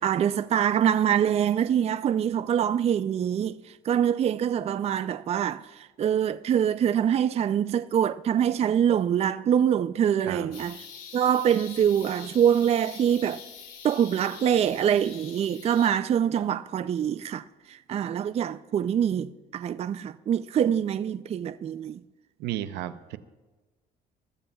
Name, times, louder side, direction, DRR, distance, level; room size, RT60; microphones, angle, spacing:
voice 1, 0.0-10.8 11.1-13.4 13.8-22.0, right 9 dB, 40° right, 0.4 m, -25 dB
sound 1, 10.5-15.9, left 7 dB, 85° left, 2.5 m, -45 dB
voice 2, 22.4-23.2, right 13 dB, 85° right, 0.7 m, -33 dB
24.0 x 14.0 x 2.3 m
cardioid pair, 110°, 17 cm